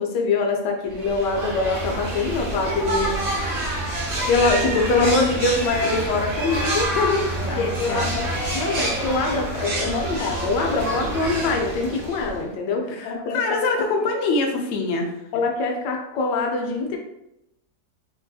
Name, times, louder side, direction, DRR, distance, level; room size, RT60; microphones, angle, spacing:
voice 1, 0.0-3.6 4.3-6.9 7.5-8.3 8.5-13.4 15.3-17.0, left 3 dB, 90° left, 2 dB, 1.3 m, -24 dB
sound 1, 0.9-12.5, right 1 dB, 55° right, 0.6 m, -27 dB
voice 2, 6.9-8.2 12.9-15.1, left 3 dB, 70° left, 2 dB, 0.7 m, -25 dB
4.3 x 2.6 x 2.2 m, 0.85 s
omnidirectional pair, 1.8 m